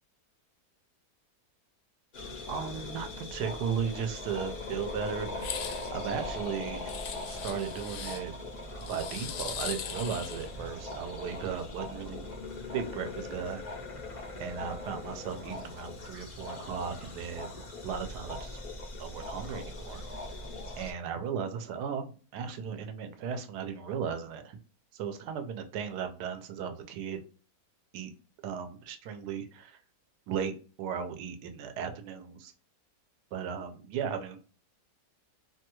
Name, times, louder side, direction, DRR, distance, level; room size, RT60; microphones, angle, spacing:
sound 1, 2.1-20.9, left 2 dB, 90° left, 0.4 m, -40 dB
voice 1, 2.5-5.5 5.9-6.9 7.3-8.3 8.9-12.2 12.7-13.6 14.4-18.6 19.0-20.0 20.8-24.6 24.9-27.2 27.9-28.1 28.4-29.8 30.3-32.5 33.3-34.5, right 7 dB, 85° right, 7 dB, 1.2 m, -36 dB
sound 2, 5.3-5.9 6.9-8.2 8.8-10.5, left 8 dB, 70° left, 0.9 m, -39 dB
2.9 x 2.2 x 2.8 m, 0.38 s
omnidirectional pair, 1.7 m